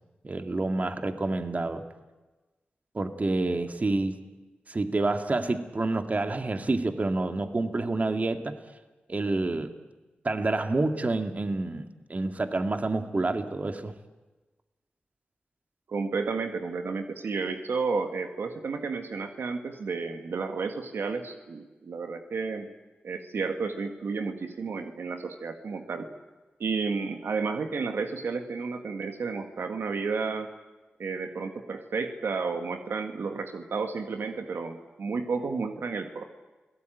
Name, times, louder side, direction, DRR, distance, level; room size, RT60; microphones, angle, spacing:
voice 1, 0.2-1.8 2.9-4.2 4.7-8.5 9.1-9.8 10.2-13.9, right 2 dB, 40° right, 7 dB, 2.1 m, -28 dB
voice 2, 15.9-22.7 23.0-26.1 26.6-30.5 31.0-36.3, right 4 dB, 80° right, 6 dB, 1.8 m, -32 dB
29.0 x 18.0 x 9.2 m, 1.2 s
cardioid pair, 50°, 4 cm